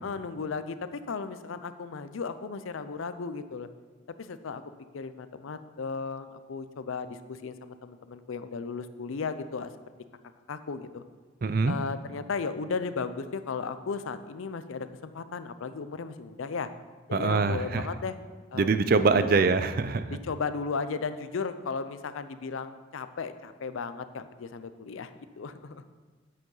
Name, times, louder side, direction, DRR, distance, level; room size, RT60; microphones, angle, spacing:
voice 1, 0.0-3.7 4.2-4.6 4.9-9.7 10.5-11.0 11.6-16.7 17.1-18.2 18.5-19.5 20.1-25.8, left 5 dB, 80° left, 12 dB, 0.5 m, -35 dB
voice 2, 11.4-11.7 17.1-17.9 18.6-20.2, right 4 dB, 45° right, 11 dB, 0.4 m, -24 dB
9.0 x 7.9 x 3.9 m, 1.4 s
head